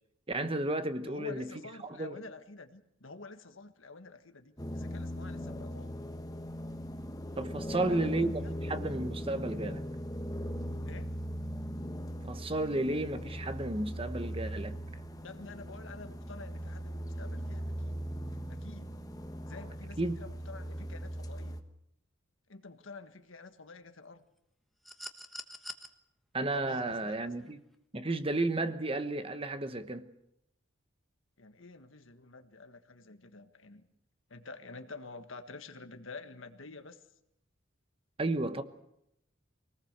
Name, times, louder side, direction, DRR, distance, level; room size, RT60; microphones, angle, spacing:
voice 1, 0.3-1.5 1.8-2.2 7.4-9.8 12.2-14.8 20.0-20.2 26.3-27.6 27.9-30.1 38.2-38.6, right 2 dB, 30° right, 1.2 m, -33 dB
voice 2, 1.0-6.0 7.7-8.5 10.8-11.1 15.2-18.1 18.5-19.0 19.5-21.6 22.5-24.2 26.5-27.3 31.4-33.9 34.3-37.0, left 3 dB, 75° left, 1.6 m, -48 dB
sound 1, 4.6-21.6, equal, 20° left, 1.4 m, -39 dB
sound 2, 24.8-25.9 27.4-27.5, equal, ahead, 1.3 m, -44 dB
24.5 x 19.0 x 6.7 m
head